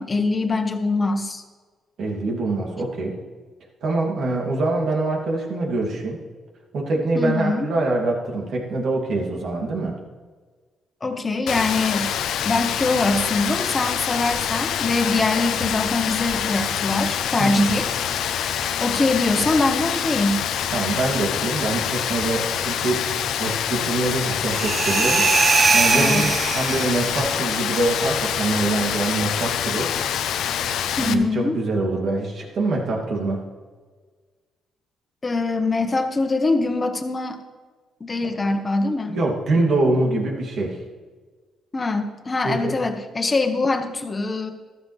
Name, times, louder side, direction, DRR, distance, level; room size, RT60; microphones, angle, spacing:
voice 1, 0.0-1.4 7.1-7.7 11.0-12.1 12.4-17.9 18.8-20.4 25.9-26.3 31.0-31.6 35.2-37.4 38.0-39.2 41.7-44.5, left 3 dB, 25° left, 7 dB, 1.3 m, -23 dB
voice 2, 2.0-3.1 3.8-6.2 6.7-10.0 17.4-17.7 20.7-23.1 23.4-25.2 25.7-29.9 31.0-33.4 38.2-38.3 39.1-40.8 42.4-42.7, right 2 dB, 65° right, -1 dB, 2.7 m, -24 dB
Rain, 11.5-31.1, left 9 dB, 80° left, 0.7 m, -26 dB
sound 1, 24.5-27.2, right 4 dB, 35° right, 0.8 m, -20 dB
13.5 x 13.0 x 3.4 m, 1.4 s
cardioid pair, 90°, 0 cm